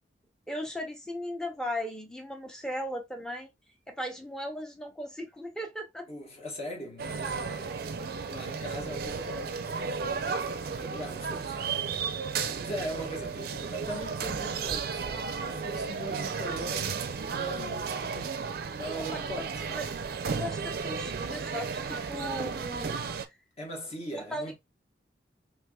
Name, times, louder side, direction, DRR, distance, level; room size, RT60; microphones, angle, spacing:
voice 1, 0.5-3.5 3.9-6.1 19.1-19.4 19.8-19.9 20.3-23.0 24.1-24.5, left 1 dB, 5° left, 0.6 m, -37 dB
voice 2, 6.1-10.4 10.7-12.0 12.6-18.4 18.7-19.5 23.6-24.6, equal, 35° left, 1.3 m, -41 dB
sound 1, 7.0-23.3, right 5 dB, 55° right, 0.4 m, -34 dB
3.3 x 3.2 x 2.3 m
head